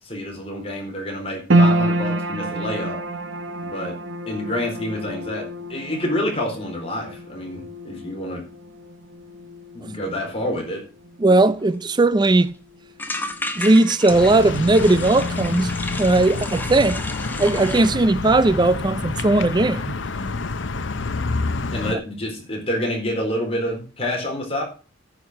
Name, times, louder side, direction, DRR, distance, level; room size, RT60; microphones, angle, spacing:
voice 1, 0.0-3.0 3.6-4.0 4.3-8.4 9.7-10.8 11.3-11.4 21.7-24.6, left 1 dB, 30° left, 4.1 m, -28 dB
sound 1, 1.5-13.9 14.2-15.1 15.6-15.7, right 1 dB, 65° right, 1.0 m, -28 dB
voice 2, 11.2-12.5 13.6-15.7 16.0-17.0 17.4-19.9, right 2 dB, 20° right, 0.4 m, -17 dB
sound 2, 11.6-11.7 11.9-12.0 12.3-12.5 13.0-17.9, left 2 dB, 10° left, 1.0 m, -33 dB
sound 3, 14.1-21.9, left 3 dB, 65° left, 0.8 m, -28 dB
9.7 x 5.9 x 7.7 m
head